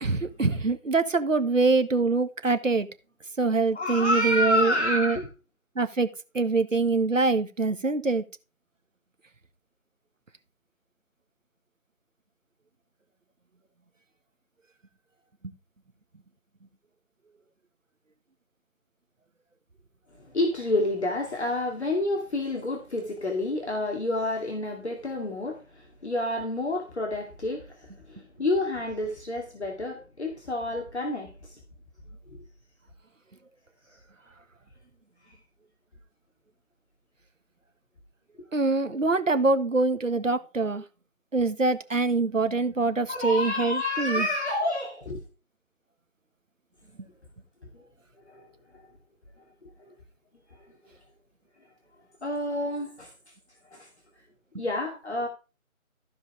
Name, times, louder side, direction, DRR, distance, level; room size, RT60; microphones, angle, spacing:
voice 1, 0.0-2.9 3.4-5.2 5.7-6.1 6.3-8.2 38.5-40.8 41.3-44.3, right 3 dB, 65° right, 1.7 m, -24 dB
voice 2, 3.7-5.3 20.2-31.6 32.3-32.4 35.3-35.4 43.1-45.2 47.7-47.9 48.3-48.5 48.7-48.8 49.8-49.9 50.7-50.8 52.2-53.1 53.7-53.9 54.6-55.3, left 1 dB, 50° left, 2.5 m, -29 dB
15.0 x 5.2 x 4.9 m
figure-of-eight pair, 160°, 42 cm